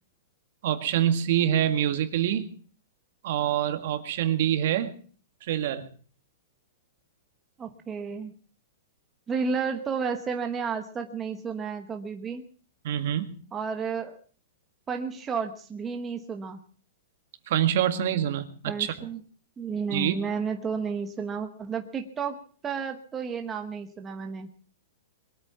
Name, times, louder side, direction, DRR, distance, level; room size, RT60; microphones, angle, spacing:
voice 1, 0.6-2.5 3.2-4.9 5.4-5.9 12.8-13.3 17.5-19.1 19.9-20.2, right 10 dB, 50° right, 10 dB, 1.9 m, -26 dB
voice 2, 7.6-8.3 9.3-12.4 13.5-14.2 14.9-16.6 18.7-19.2 19.6-22.4 22.6-24.5, right 5 dB, 15° right, 5 dB, 1.1 m, -32 dB
22.5 x 9.0 x 7.1 m, 0.43 s
hypercardioid pair, 165°, 0 cm